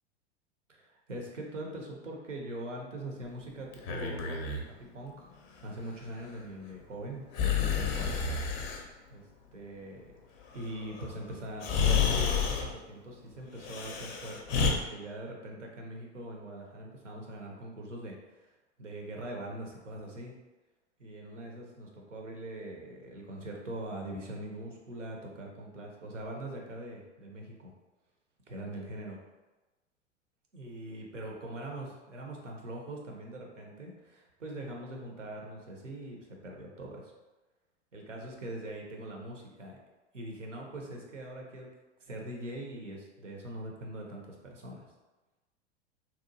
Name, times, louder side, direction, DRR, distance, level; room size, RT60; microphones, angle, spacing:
voice 1, 0.7-4.4 4.6-5.3 5.6-8.2 9.1-9.2 9.5-10.1 10.5-18.5 18.8-20.3 21.0-27.7 28.5-29.2 30.5-37.1 37.9-39.8 40.1-41.7 42.0-44.8, right 1 dB, 85° right, 0 dB, 0.6 m, -42 dB
Breathing, 3.7-4.7 7.3-8.8 11.0-11.1 11.6-12.7 13.6-14.7, left 6 dB, 40° left, 0.4 m, -29 dB
2.8 x 2.2 x 2.5 m, 1.1 s
figure-of-eight pair, 90°, 36 cm